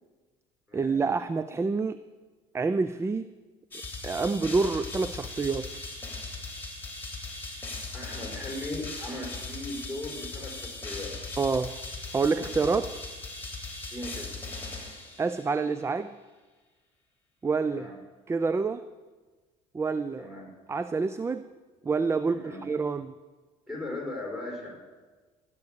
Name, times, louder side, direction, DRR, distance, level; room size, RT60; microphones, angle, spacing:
voice 1, 0.7-2.0 2.5-3.3 4.0-5.7 11.4-11.8 12.1-12.9 15.2-16.1 17.4-17.9 18.3-18.8 19.7-20.3 20.7-21.5 21.8-23.1, right 4 dB, 20° right, 13 dB, 0.4 m, -27 dB
sound 1, 3.7-15.6, left 3 dB, 15° left, 3.3 m, -39 dB
voice 2, 7.9-11.2 13.9-14.3 17.6-18.0 20.2-20.5 22.3-22.6 23.7-24.8, left 1 dB, ahead, -1 dB, 5.3 m, -38 dB
14.0 x 8.4 x 6.7 m, 1.3 s
supercardioid pair, 90°, 14 cm